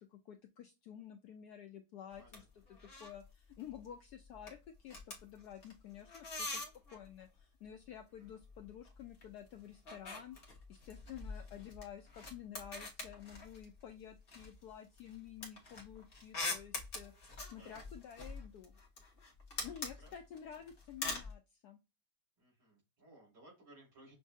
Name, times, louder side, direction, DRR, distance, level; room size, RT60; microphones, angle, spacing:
voice 1, 0.0-6.7 6.9-10.4 10.7-18.7 19.6-21.8, left 9 dB, 80° left, 6 dB, 0.9 m, -51 dB
sound 1, 2.1-2.4 2.7-3.2 3.5-3.9 4.2-7.1 8.2-9.3 9.5-13.8 14.3-21.3, left 2 dB, 35° left, 1.0 m, -45 dB
voice 2, 17.5-17.8 19.6-19.7 20.0-20.1 22.4-24.1, right 1 dB, 85° right, -6 dB, 3.5 m, -61 dB
6.1 x 2.6 x 2.4 m, 0.27 s
omnidirectional pair, 2.2 m